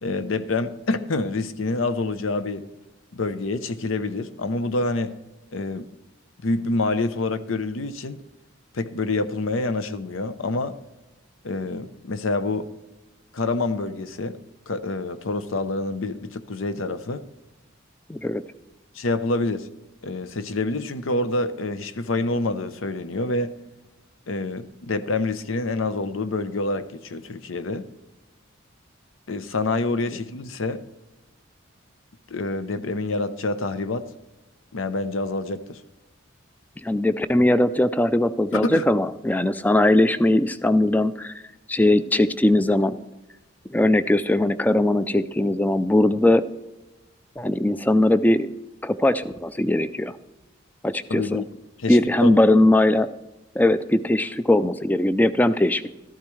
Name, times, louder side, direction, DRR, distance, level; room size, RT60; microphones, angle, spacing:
voice 1, 0.0-2.6 3.1-5.1 5.5-5.9 6.4-8.2 8.7-10.8 11.4-12.7 13.3-14.4 14.7-17.3 18.9-19.7 20.0-23.5 24.3-27.9 29.3-30.8 32.3-34.1 34.7-35.8 38.5-38.8 51.1-51.5 51.8-52.4, left 2 dB, 80° left, 11 dB, 0.7 m, -27 dB
voice 2, 18.1-18.4 36.8-41.3 41.7-43.0 43.7-46.4 47.4-48.5 48.8-50.2 50.8-51.4 51.9-53.1 53.6-55.9, left 1 dB, 10° left, 14 dB, 0.3 m, -20 dB
13.5 x 12.0 x 3.2 m, 1.1 s
head